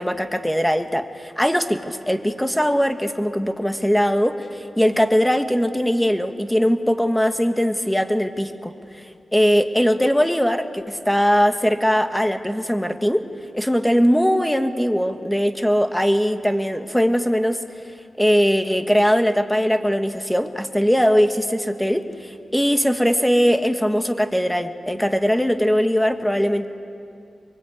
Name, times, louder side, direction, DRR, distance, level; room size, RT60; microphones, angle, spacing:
voice 1, 0.0-8.7 9.3-13.2 13.5-17.6 18.2-26.7, equal, 5° left, 7 dB, 1.6 m, -20 dB
24.5 x 23.0 x 8.6 m, 2.5 s
cardioid pair, 75°, 0 cm